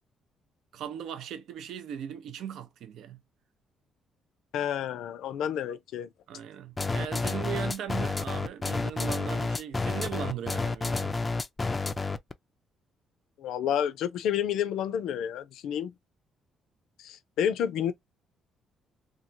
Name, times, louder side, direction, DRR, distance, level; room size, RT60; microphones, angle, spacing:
voice 1, 0.7-3.2 6.3-11.2, right 9 dB, 75° right, 0.5 m, -38 dB
voice 2, 4.5-6.1 13.4-15.9 17.0-17.9, left 9 dB, 80° left, 0.4 m, -30 dB
sound 1, 6.8-12.3, left 3 dB, 20° left, 0.3 m, -30 dB
3.0 x 2.3 x 2.6 m
cardioid pair, 120°, 0 cm